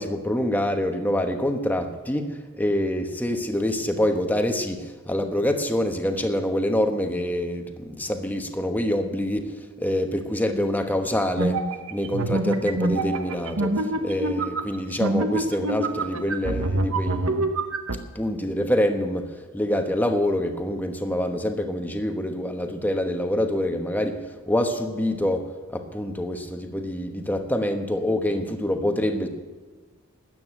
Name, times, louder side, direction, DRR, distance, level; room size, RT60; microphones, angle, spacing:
voice 1, 0.0-11.6 11.9-17.4 18.1-29.3, left 1 dB, 10° left, 5 dB, 1.1 m, -26 dB
sound 1, 11.4-18.0, right 2 dB, 65° right, 1.0 m, -26 dB
13.0 x 9.4 x 9.1 m, 1.4 s
head